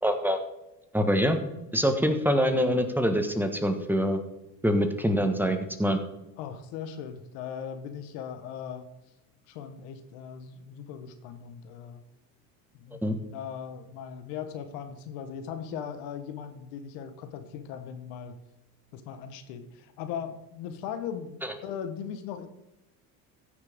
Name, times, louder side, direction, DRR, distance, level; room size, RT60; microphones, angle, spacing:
voice 1, 0.0-0.4 0.9-1.4 1.7-4.2 4.6-6.0 13.0-13.2 21.4-21.5, equal, 5° right, 6 dB, 1.4 m, -25 dB
voice 2, 6.4-8.9 9.5-12.0 12.7-18.3 18.9-22.5, left 8 dB, 75° left, 9 dB, 1.3 m, -39 dB
15.0 x 6.5 x 3.6 m, 0.99 s
supercardioid pair, 85°, 44 cm